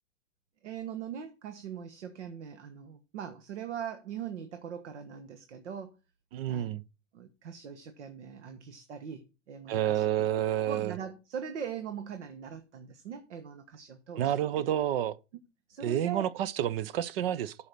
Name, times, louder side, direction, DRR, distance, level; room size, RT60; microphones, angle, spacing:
voice 1, 0.6-6.0 6.5-6.7 7.1-10.3 10.7-14.4 15.7-16.3, right 8 dB, 75° right, 1.4 m, -41 dB
voice 2, 6.3-6.8 9.7-10.9 14.2-15.2 15.8-17.6, right 11 dB, 55° right, 0.7 m, -29 dB
8.1 x 5.6 x 5.9 m
hypercardioid pair, 135°, 36 cm